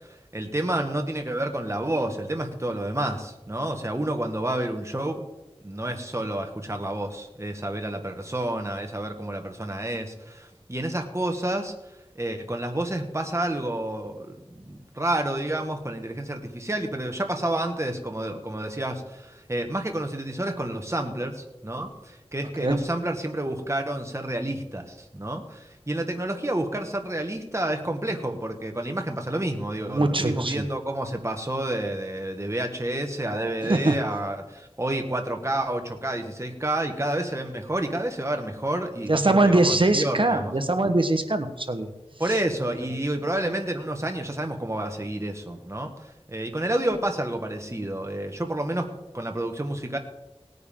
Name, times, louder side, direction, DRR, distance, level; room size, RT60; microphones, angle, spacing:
voice 1, 0.0-5.3 5.6-11.7 12.2-40.5 42.2-48.9 49.1-50.0, right 1 dB, 25° right, 4 dB, 1.7 m, -29 dB
voice 2, 29.9-30.6 33.6-34.0 39.1-41.9, right 2 dB, 55° right, 7 dB, 1.2 m, -22 dB
18.5 x 9.4 x 3.8 m, 0.99 s
wide cardioid pair, 45°, 11 cm